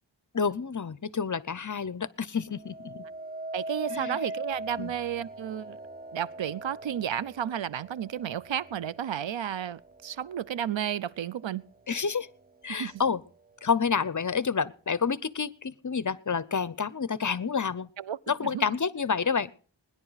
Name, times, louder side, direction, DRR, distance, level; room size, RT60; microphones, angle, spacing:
voice 1, 0.3-3.0 3.9-4.2 4.8-4.9 11.9-12.3 12.6-13.2 13.6-17.9 18.3-19.5, left 6 dB, 40° left, 0.6 m, -29 dB
sound 1, 2.5-11.7 12.2-12.7, right 1 dB, 20° right, 0.5 m, -42 dB
voice 2, 3.5-5.8 6.1-11.6 12.8-12.9 18.0-18.6, right 9 dB, 75° right, 0.6 m, -32 dB
21.5 x 10.5 x 4.0 m
wide cardioid pair, 40°, 45 cm